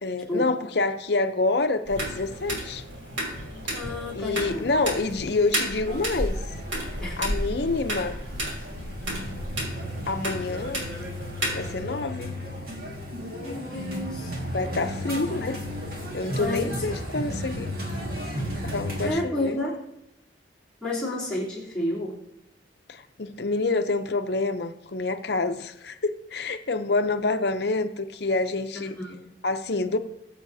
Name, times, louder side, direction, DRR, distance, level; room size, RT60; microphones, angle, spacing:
voice 1, 0.0-2.8 4.1-6.4 7.2-8.2 10.1-10.9 11.5-12.3 14.5-15.6 16.1-17.7 18.6-19.6 22.9-29.0 29.4-30.0, left 3 dB, 60° left, 8 dB, 0.7 m, -27 dB
sound 1, 1.8-11.8, equal, 85° right, 3.2 m, -32 dB
voice 2, 3.7-4.8 7.0-7.2 13.3-14.4 15.1-15.3 16.3-16.8 19.0-19.8 20.8-22.2 28.7-29.3, left 1 dB, 5° left, -9 dB, 3.3 m, -31 dB
sound 2, 5.8-19.1, equal, 50° right, 1.9 m, -34 dB
20.0 x 7.6 x 2.7 m, 0.85 s
head